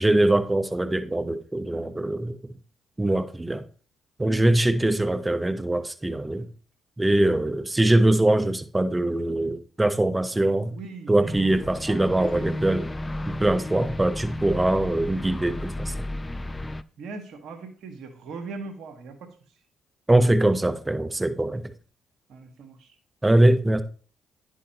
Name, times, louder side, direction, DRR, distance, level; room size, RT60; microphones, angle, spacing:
voice 1, 0.0-2.4 3.0-3.6 4.2-6.5 7.0-10.8 11.1-12.9 13.3-15.9 20.1-21.7 23.2-23.8, right 1 dB, 15° right, 1.1 m, -22 dB
voice 2, 10.7-12.5 17.0-19.3 22.3-23.0, right 4 dB, 70° right, 1.7 m, -40 dB
sound 1, 11.3-16.8, left 1 dB, 20° left, 0.6 m, -33 dB
10.0 x 8.2 x 3.0 m
supercardioid pair, 60°, 0 cm